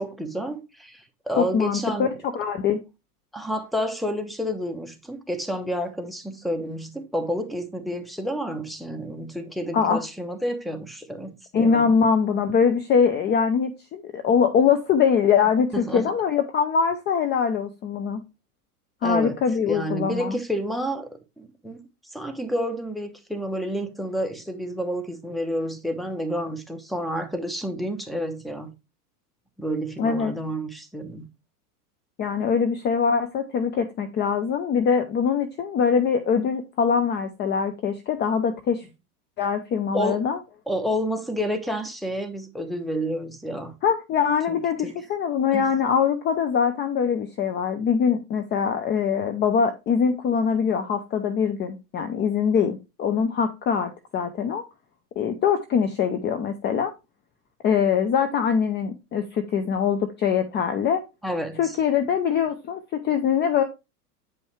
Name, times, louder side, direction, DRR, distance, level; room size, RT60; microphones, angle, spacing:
voice 1, 0.0-2.1 3.3-11.9 15.7-16.1 19.0-19.4 19.6-21.8 22.1-28.7 29.6-31.3 39.9-40.2 40.7-43.7 44.5-44.6 44.8-44.9 45.5-45.7 61.2-61.7, equal, ahead, 1.0 m, -30 dB
voice 2, 1.4-2.1 2.3-2.8 9.7-10.0 11.5-18.2 19.0-20.4 30.0-30.3 32.2-38.8 39.4-40.4 43.8-54.6 55.2-56.9 57.6-61.0 61.6-63.6, left 6 dB, 20° left, 0.6 m, -23 dB
8.5 x 5.3 x 3.2 m
hypercardioid pair, 100°, 47 cm